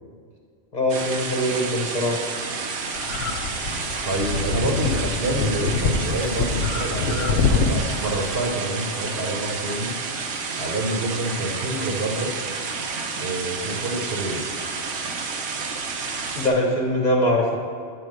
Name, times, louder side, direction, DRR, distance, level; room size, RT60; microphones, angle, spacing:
voice 1, 0.7-2.2 16.4-17.6, left 1 dB, 40° left, -1 dB, 1.0 m, -22 dB
sound 1, 0.9-16.5, right 4 dB, 80° right, 1.1 m, -30 dB
sound 2, 2.9-8.4, left 5 dB, 80° left, 1.0 m, -25 dB
voice 2, 4.0-10.0 10.6-12.3 13.2-14.5, right 1 dB, 55° right, 1 dB, 1.1 m, -27 dB
7.7 x 4.6 x 6.4 m, 2.1 s
omnidirectional pair, 1.3 m